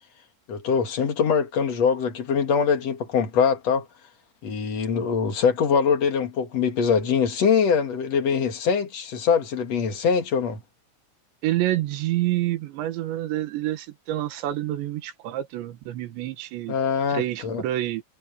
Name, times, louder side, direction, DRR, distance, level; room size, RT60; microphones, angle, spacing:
voice 1, 0.5-3.9 4.4-10.6 16.7-17.6, left 6 dB, 45° left, 2.5 m, -23 dB
voice 2, 11.4-16.7 17.1-18.0, right 14 dB, 85° right, 3.8 m, -28 dB
omnidirectional pair, 5.0 m